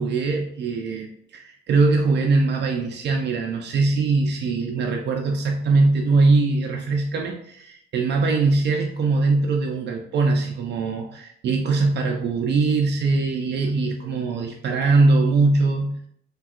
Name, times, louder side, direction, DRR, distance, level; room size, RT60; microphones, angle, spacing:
voice 1, 0.0-16.0, right 3 dB, 60° right, 2 dB, 0.4 m, -21 dB
3.5 x 2.3 x 2.3 m, 0.68 s
cardioid pair, 90°, 20 cm